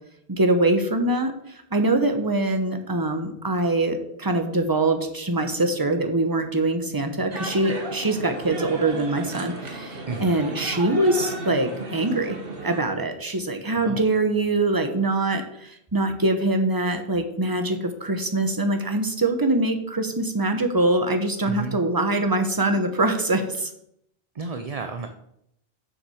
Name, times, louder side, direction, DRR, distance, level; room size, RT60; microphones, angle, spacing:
voice 1, 0.3-1.3 1.7-12.4 12.6-23.7, right 2 dB, 20° right, 7 dB, 1.0 m, -23 dB
sound 1, 7.3-12.8, right 2 dB, 60° right, 1.6 m, -34 dB
voice 2, 21.5-21.8 24.3-25.1, right 4 dB, 40° right, 7 dB, 0.7 m, -32 dB
7.2 x 6.6 x 6.4 m, 0.75 s
omnidirectional pair, 1.0 m